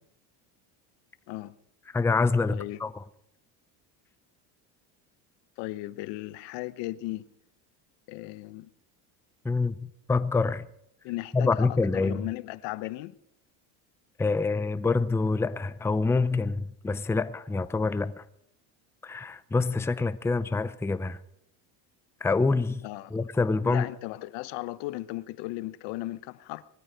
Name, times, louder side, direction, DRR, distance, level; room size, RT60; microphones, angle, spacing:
voice 1, 1.9-3.0 9.4-10.7 11.3-12.2 14.2-18.2 19.0-21.2 22.2-22.8 23.1-23.9, left 3 dB, 5° left, 0.6 m, -26 dB
voice 2, 2.5-2.8 5.6-7.3 8.1-8.7 11.0-13.2 22.8-23.2 23.6-26.6, left 18 dB, 75° left, 1.0 m, -36 dB
20.0 x 13.5 x 5.0 m
cardioid pair, 115°, 43 cm